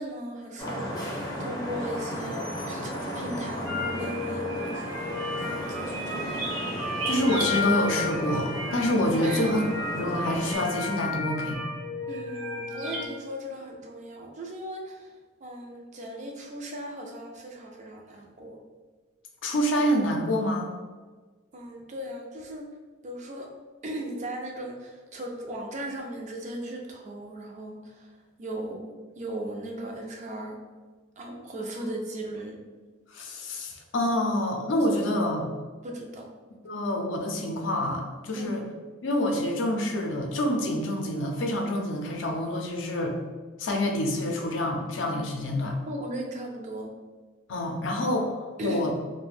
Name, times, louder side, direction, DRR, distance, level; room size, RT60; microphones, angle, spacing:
voice 1, 0.0-5.0 5.4-6.3 9.2-9.6 12.1-15.1 15.4-18.6 21.5-22.7 23.0-23.5 23.8-30.6 31.2-32.6 35.8-36.3 38.3-38.5 45.9-46.9 48.6-48.8, right 1 dB, 40° right, 1 dB, 0.4 m, -37 dB
Vehicle horn car horn honking / Traffic noise roadway noise, 0.6-10.6, equal, 20° left, 0.5 m, -35 dB
sound 1, 3.7-13.1, left 2 dB, 80° right, 0.6 m, -33 dB
voice 2, 7.0-9.6 9.9-11.6 19.4-20.7 31.8-31.9 33.1-35.5 36.6-38.6 39.0-43.2 43.6-45.8 47.5-48.9, left 1 dB, 70° left, 2 dB, 0.5 m, -27 dB
2.4 x 2.1 x 3.2 m, 1.4 s
head